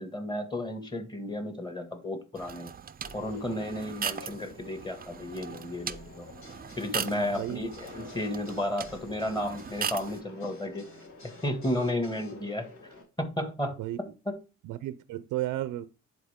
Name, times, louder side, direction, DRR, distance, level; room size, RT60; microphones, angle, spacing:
voice 1, 0.0-2.7 3.1-6.3 6.8-10.9 11.4-12.7 13.2-13.8 14.3-14.4, left 1 dB, 15° left, 2.0 m, -33 dB
sound 1, 2.4-10.2, right 7 dB, 30° right, 0.5 m, -39 dB
Conversation, 3.0-13.0, left 3 dB, 45° left, 3.6 m, -50 dB
sound 2, 6.4-12.3, left 2 dB, 70° left, 2.7 m, -55 dB
voice 2, 7.0-7.6 13.8-14.0 14.6-15.9, right 14 dB, 90° right, 0.6 m, -34 dB
10.0 x 4.6 x 3.6 m
cardioid pair, 90°, 30 cm